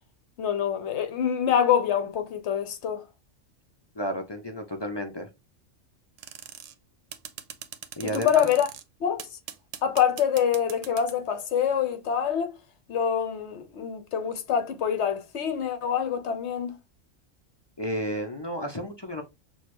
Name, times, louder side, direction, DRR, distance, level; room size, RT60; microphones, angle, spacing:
voice 1, 0.4-3.0 8.1-8.7 9.0-9.3 9.8-12.5 12.9-16.7, left 8 dB, 65° left, 1.0 m, -25 dB
voice 2, 4.0-5.3 8.0-8.5 17.8-19.2, equal, 40° left, 0.3 m, -32 dB
sound 1, 6.2-6.7 7.1-8.8 9.2-11.2, right 9 dB, 80° right, 1.0 m, -41 dB
6.3 x 2.3 x 3.0 m
omnidirectional pair, 1.3 m